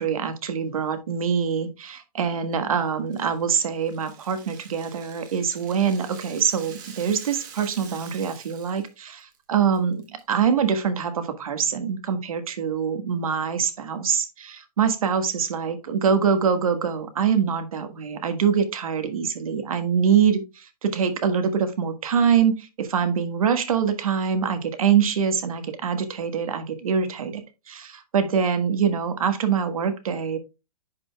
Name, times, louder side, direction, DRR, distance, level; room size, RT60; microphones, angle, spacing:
voice 1, 0.0-27.4 27.7-30.4, right 7 dB, 60° right, 1.5 m, -24 dB
Rattle (instrument), 3.1-8.9 9.2-9.4 9.7-10.2, right 7 dB, 30° right, 1.5 m, -46 dB
10.5 x 5.2 x 2.3 m
hypercardioid pair, 175°, 20 cm